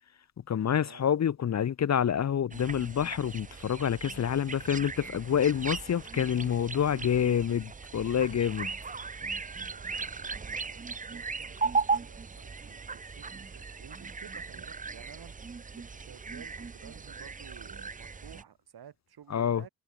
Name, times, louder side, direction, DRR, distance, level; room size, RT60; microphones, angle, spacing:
voice 1, 0.5-8.7 19.3-19.6, left 8 dB, 40° left, 0.8 m, -27 dB
sound 1, 2.5-18.4, right 4 dB, 20° right, 0.7 m, -37 dB
voice 2, 9.6-15.3 15.7-19.7, right 9 dB, 65° right, 4.9 m, -53 dB
supercardioid pair, 60°, 41 cm